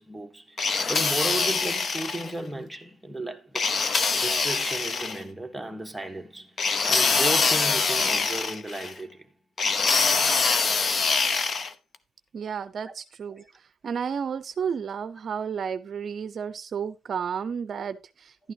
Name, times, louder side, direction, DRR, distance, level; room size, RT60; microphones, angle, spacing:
voice 1, 0.0-3.7 4.1-9.3 12.9-13.0 13.3-13.5, right 2 dB, 5° right, 1.2 m, -35 dB
sound 1, 0.6-2.3 3.6-5.2 6.6-8.9 9.6-11.7, left 4 dB, 45° left, 0.8 m, -24 dB
voice 2, 12.3-13.4 13.8-18.5, right 7 dB, 50° right, 0.5 m, -32 dB
11.5 x 9.2 x 2.8 m
cardioid pair, 90°, 0 cm